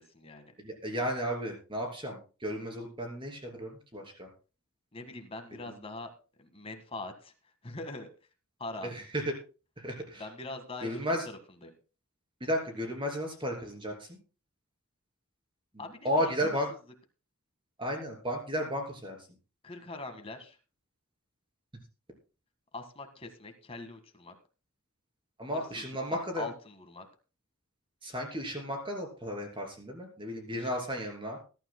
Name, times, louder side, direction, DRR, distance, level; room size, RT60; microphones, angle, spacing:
voice 1, 0.0-0.5 4.9-6.1 6.4-7.3 7.6-8.1 8.6-8.9 10.2-11.7 15.8-16.5 19.6-20.6 22.7-24.3 25.7-27.1 30.5-30.7, left 2 dB, 25° left, 6 dB, 1.7 m, -43 dB
voice 2, 0.6-4.3 5.5-5.7 8.8-9.2 9.8-10.2 10.8-11.2 12.4-14.2 15.7-16.7 17.8-19.2 25.4-26.5 28.0-31.4, equal, 25° right, 3 dB, 3.0 m, -34 dB
21.0 x 12.0 x 2.2 m, 0.34 s
head